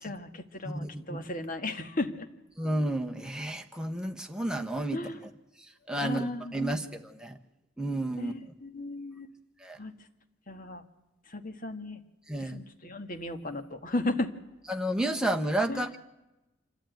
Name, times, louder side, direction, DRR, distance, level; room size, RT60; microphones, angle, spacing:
voice 1, 0.0-2.3 4.9-5.2 6.0-6.8 8.2-9.3 9.8-9.9 10.5-10.8 11.3-12.0 12.4-14.3 15.7-15.8, left 2 dB, 40° left, 6 dB, 1.5 m, -35 dB
voice 2, 0.6-1.2 2.6-5.0 5.6-7.4 7.8-8.3 9.6-9.8 12.3-12.6 14.7-16.0, right 1 dB, 5° right, 2 dB, 1.1 m, -31 dB
26.0 x 13.0 x 9.2 m, 1.0 s
head